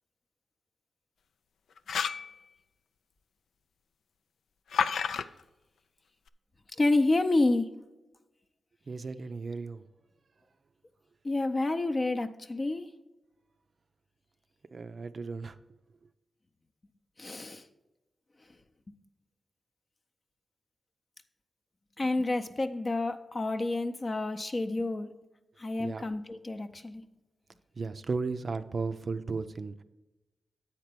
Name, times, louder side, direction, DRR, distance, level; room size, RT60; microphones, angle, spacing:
sound 1, 1.8-2.3 4.7-5.3, left 6 dB, 85° left, 0.3 m, -29 dB
voice 1, 6.8-7.7 11.2-12.9 17.2-17.6 22.0-25.1 25.6-27.0, left 2 dB, 35° left, 7 dB, 0.6 m, -29 dB
voice 2, 8.9-9.8 14.7-15.6 25.8-26.0 27.8-29.8, right 4 dB, 45° right, 10 dB, 0.4 m, -35 dB
8.6 x 4.5 x 6.7 m, 1.0 s
cardioid pair, 90°, 0 cm